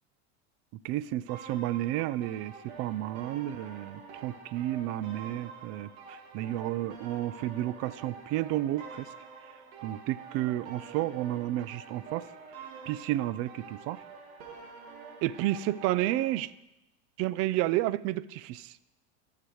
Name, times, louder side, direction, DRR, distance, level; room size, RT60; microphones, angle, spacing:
voice 1, 0.8-9.1 9.8-12.3 12.9-14.0 15.2-16.5 17.2-18.7, right 14 dB, 45° right, 18 dB, 0.4 m, -31 dB
sound 1, 1.3-16.3, right 5 dB, 70° right, 2.1 m, -47 dB
14.5 x 6.6 x 3.1 m, 0.91 s
supercardioid pair, 125°, 33 cm